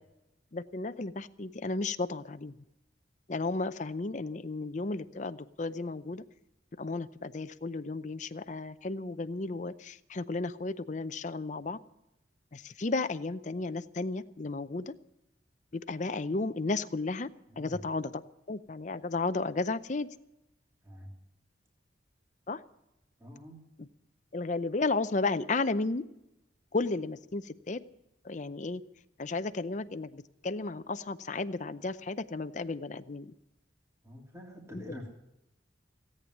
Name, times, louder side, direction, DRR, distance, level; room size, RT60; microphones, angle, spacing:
voice 1, 0.5-2.5 3.3-6.2 6.8-11.8 12.5-14.9 15.7-17.3 17.6-18.2 18.5-20.1 22.5-22.6 24.3-26.0 26.7-27.8 28.2-28.8 29.2-33.3, left 3 dB, 40° left, 11 dB, 0.6 m, -33 dB
voice 2, 17.5-17.8 20.8-21.1 23.2-23.6 34.0-35.1, equal, 15° right, -1 dB, 3.0 m, -46 dB
17.5 x 8.8 x 9.5 m, 0.89 s
head